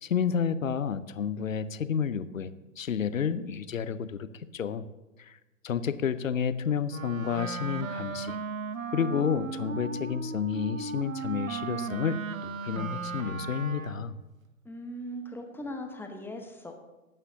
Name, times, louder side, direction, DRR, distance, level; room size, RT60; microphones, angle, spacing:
voice 1, 0.0-4.8 5.2-5.4 5.6-8.4 8.9-14.2, left 7 dB, 75° left, 14 dB, 0.8 m, -30 dB
Wind instrument woodwind instrument, 6.9-14.1, right 4 dB, 75° right, 1.0 m, -36 dB
voice 2, 14.6-16.8, equal, 5° left, 3 dB, 1.1 m, -39 dB
22.0 x 8.9 x 2.8 m, 1.1 s
figure-of-eight pair, 105°, 40 cm